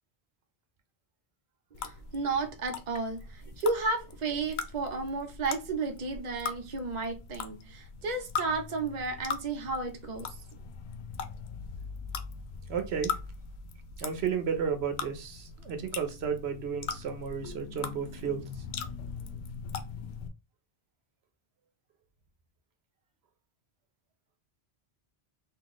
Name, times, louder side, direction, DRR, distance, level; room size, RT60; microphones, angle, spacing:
sound 1, 1.7-20.3, left 6 dB, 85° left, 0.8 m, -40 dB
voice 1, 1.7-10.4, right 3 dB, 45° right, 0.9 m, -33 dB
voice 2, 12.7-13.1 14.0-18.4, right 7 dB, 85° right, 1.0 m, -32 dB
4.0 x 2.6 x 3.0 m
omnidirectional pair, 1.0 m